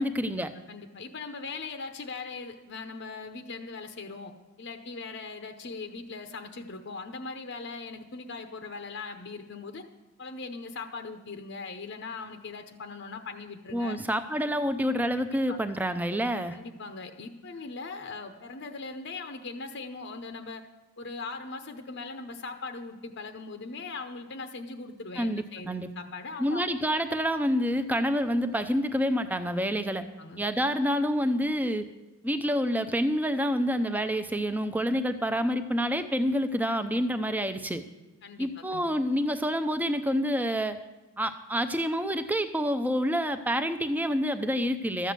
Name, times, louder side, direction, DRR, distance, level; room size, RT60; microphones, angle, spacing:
voice 1, 0.0-0.5 13.7-16.6 25.2-25.9 26.4-30.0 30.4-31.9 32.2-37.8 38.4-40.8 41.2-45.1, equal, 10° right, 10 dB, 0.5 m, -28 dB
voice 2, 0.7-9.8 10.2-14.0 15.5-15.6 16.5-20.6 21.0-26.6 30.2-30.4 38.2-38.9, left 4 dB, 55° left, 6 dB, 0.7 m, -40 dB
13.0 x 7.8 x 6.7 m, 1.1 s
head